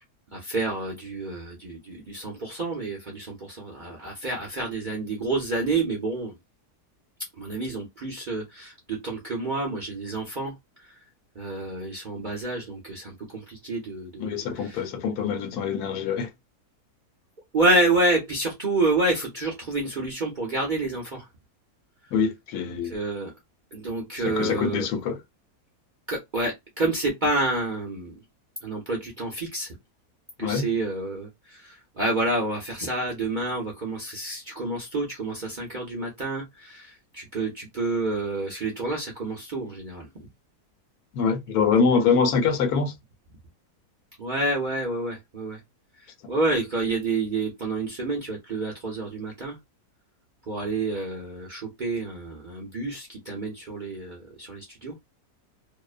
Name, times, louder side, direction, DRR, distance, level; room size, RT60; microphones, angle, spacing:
voice 1, 0.3-6.3 7.4-10.5 11.4-14.4 17.5-21.2 22.9-23.3 23.7-24.9 26.1-28.2 28.6-29.7 30.4-40.1 44.2-45.6 46.3-49.6 50.5-54.9, right 2 dB, 50° right, 0.6 m, -28 dB
voice 2, 14.2-16.3 22.1-23.0 24.2-25.2 30.4-30.7 41.1-42.9 46.2-46.4, left 5 dB, 75° left, 1.2 m, -24 dB
2.7 x 2.0 x 2.3 m
omnidirectional pair, 1.7 m